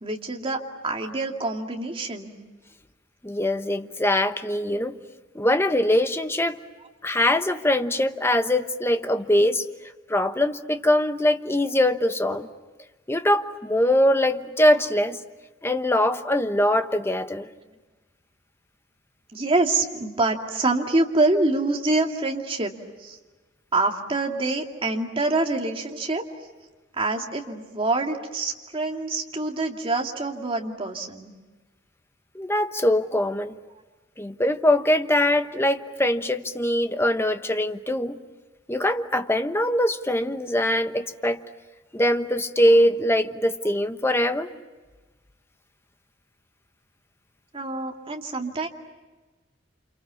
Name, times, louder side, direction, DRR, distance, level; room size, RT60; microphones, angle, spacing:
voice 1, 0.0-2.3 19.3-22.7 23.0-23.2 23.7-26.2 27.0-31.3 47.5-48.7, right 2 dB, 30° right, 2 dB, 2.4 m, -26 dB
voice 2, 3.2-5.0 5.3-6.6 7.0-9.7 10.1-12.5 13.1-15.2 15.6-17.5 32.3-33.6 34.2-38.2 38.7-41.4 41.9-44.5, left 1 dB, 15° left, 8 dB, 1.1 m, -22 dB
29.5 x 27.5 x 7.1 m, 1.2 s
head